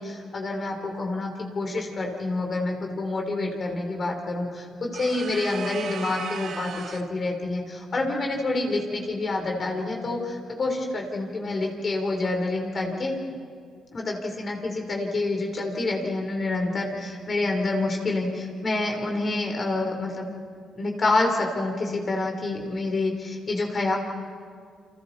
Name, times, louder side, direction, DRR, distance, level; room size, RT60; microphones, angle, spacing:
voice 1, 0.0-13.1 13.9-20.3 20.8-24.0, left 2 dB, 40° left, 1 dB, 3.7 m, -27 dB
sound 1, 4.9-7.2, right 7 dB, 65° right, 1.2 m, -37 dB
29.5 x 25.0 x 4.2 m, 2.1 s
cardioid pair, 90°, 0 cm